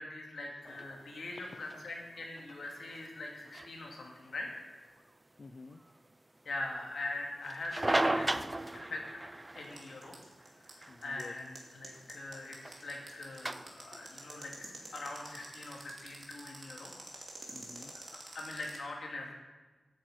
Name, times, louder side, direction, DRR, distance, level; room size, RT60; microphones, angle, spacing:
voice 1, 0.0-4.5 6.4-8.5 8.7-9.0 9.5-10.1 10.7-16.9 17.9-19.3, left 2 dB, 65° left, 0 dB, 2.5 m, -42 dB
sound 1, 0.6-15.8, right 1 dB, 15° right, 0.3 m, -39 dB
voice 2, 1.4-1.9 5.4-5.8 10.9-11.3 17.2-17.9, left 3 dB, 45° left, 8 dB, 0.5 m, -51 dB
sound 2, 9.6-18.8, right 3 dB, 45° right, 2.5 m, -48 dB
9.4 x 8.9 x 7.7 m, 1.3 s
wide cardioid pair, 155°, 0 cm